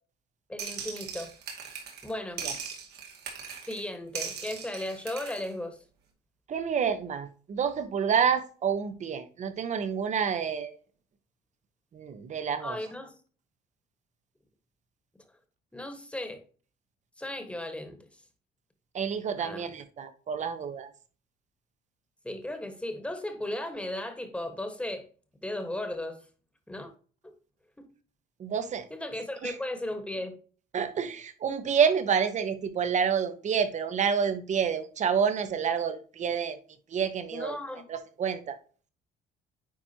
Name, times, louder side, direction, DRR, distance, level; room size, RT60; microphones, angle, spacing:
voice 1, 0.5-1.3 2.0-2.4 3.7-5.8 12.6-13.1 15.7-16.4 17.2-18.1 19.4-19.7 22.2-25.0 25.4-26.2 26.7-26.9 28.9-30.3 37.3-37.8, left 1 dB, 5° left, 6 dB, 1.5 m, -36 dB
sound 1, 0.6-2.1 2.4-3.8 4.1-5.5, right 6 dB, 75° right, 2.3 m, -39 dB
voice 2, 6.5-10.8 11.9-12.8 18.9-20.9 28.4-28.9 29.4-29.6 30.7-36.6 36.9-37.6 37.9-38.6, right 7 dB, 45° right, 10 dB, 1.1 m, -28 dB
9.6 x 4.3 x 2.9 m, 0.39 s
cardioid pair, 110°, 17 cm